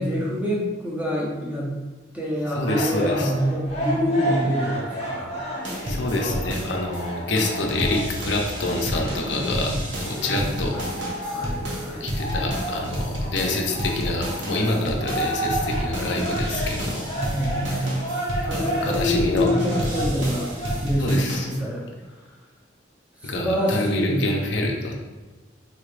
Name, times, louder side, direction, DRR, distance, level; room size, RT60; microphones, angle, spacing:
voice 1, 0.0-1.7 2.1-5.4 10.2-12.2 17.1-18.0 18.4-20.5 20.8-22.3 23.2-24.3, equal, 5° right, -5 dB, 0.7 m, -26 dB
voice 2, 2.5-3.3 5.8-10.8 12.0-17.1 18.5-19.5 21.0-21.5 23.2-24.9, left 2 dB, 70° left, 1 dB, 0.6 m, -27 dB
sound 1, 2.7-20.8, right 1 dB, 35° left, 0.6 m, -32 dB
sound 2, 5.6-7.0 7.4-21.6, equal, 75° right, 0.9 m, -30 dB
4.2 x 3.2 x 2.4 m, 1.2 s
head